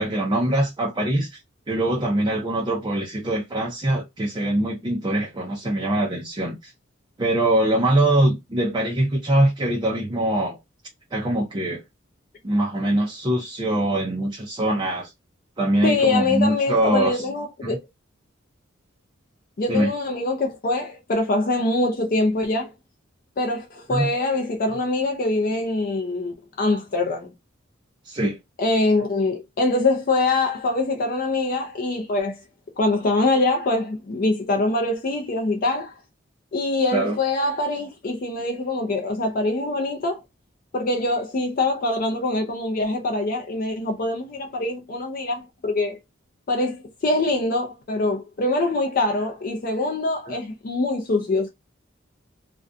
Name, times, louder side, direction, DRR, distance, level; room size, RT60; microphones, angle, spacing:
voice 1, 0.0-1.4 1.7-6.7 7.2-10.6 11.1-11.8 12.4-15.1 15.6-17.3 17.6-17.8 19.7-19.9 23.9-24.1 28.0-28.4 36.9-37.2 50.3-50.4, right 1 dB, 20° right, 0.5 m, -23 dB
voice 2, 15.8-17.8 19.6-22.7 23.4-27.3 28.6-32.4 32.8-36.0 36.5-40.2 40.7-46.0 46.5-46.8 47.0-51.5, left 2 dB, 45° left, 0.4 m, -24 dB
2.5 x 2.2 x 2.5 m
head